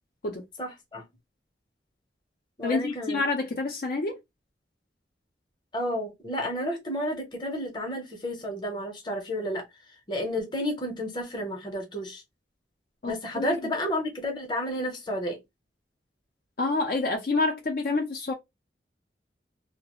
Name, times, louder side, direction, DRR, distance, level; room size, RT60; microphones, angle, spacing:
voice 1, 0.6-1.0 2.6-3.2 5.7-9.6 10.1-12.2 13.1-15.4, equal, 25° left, 0.8 m, -31 dB
voice 2, 2.6-4.2 13.0-13.6 16.6-18.3, left 3 dB, 55° left, 0.5 m, -28 dB
2.3 x 2.1 x 2.9 m
head